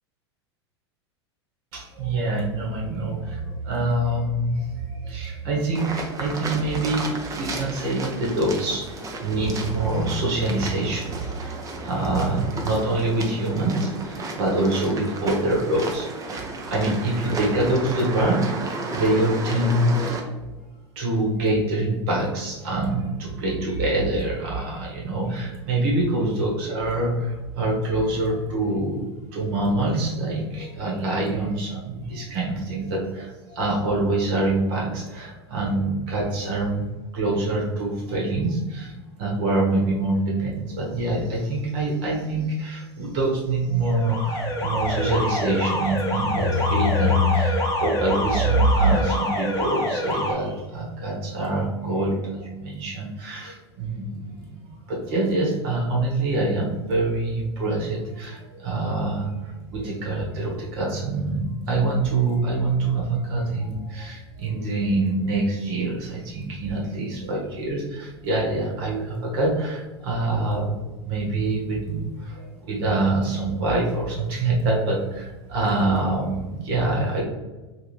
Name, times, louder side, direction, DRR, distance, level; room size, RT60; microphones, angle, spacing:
voice 1, 1.7-11.6 11.8-20.2 20.9-36.8 37.1-38.9 39.2-70.8 71.0-77.2, right 2 dB, 55° right, -2 dB, 1.2 m, -25 dB
sound 1, 5.7-20.2, right 2 dB, 25° right, 0.6 m, -33 dB
Alarm, 43.8-50.3, left 1 dB, 25° left, 1.0 m, -26 dB
3.3 x 2.7 x 3.1 m, 1.2 s
figure-of-eight pair, 85°, 14 cm